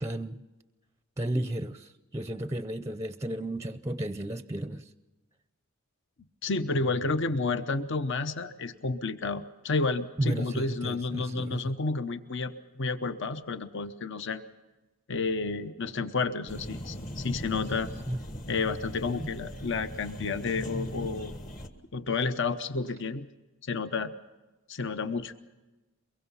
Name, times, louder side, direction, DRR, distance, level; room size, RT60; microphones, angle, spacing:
voice 1, 0.0-0.4 1.2-4.8 10.2-11.8 18.1-18.2 19.2-19.3, right 1 dB, 15° right, 0.6 m, -33 dB
voice 2, 6.4-14.5 15.1-17.9 18.5-21.3 21.9-23.3 23.6-24.1 24.7-25.3, left 3 dB, 60° left, 0.9 m, -31 dB
sound 1, 16.5-21.7, equal, 40° left, 1.5 m, -39 dB
23.5 x 22.5 x 5.6 m
head